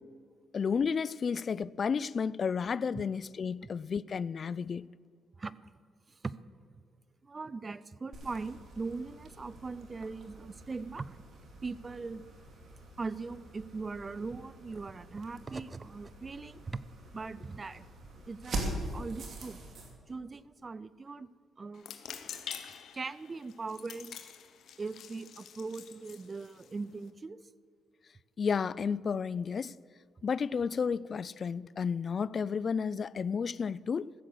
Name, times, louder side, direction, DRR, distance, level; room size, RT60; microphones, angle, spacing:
voice 1, 0.5-4.9 28.4-29.7 30.2-34.1, left 6 dB, 45° left, 0.3 m, -32 dB
voice 2, 7.2-11.2 11.6-12.2 13.0-16.8 17.1-17.9 18.3-19.6 20.1-21.3 21.6-22.0 22.9-24.2 24.8-27.5, right 4 dB, 30° right, 0.5 m, -40 dB
sound 1, 8.1-19.9, right 2 dB, 55° right, 2.6 m, -44 dB
sound 2, 21.7-27.1, left 8 dB, 65° left, 1.0 m, -47 dB
15.0 x 7.7 x 6.7 m
cardioid pair, 90°, 0 cm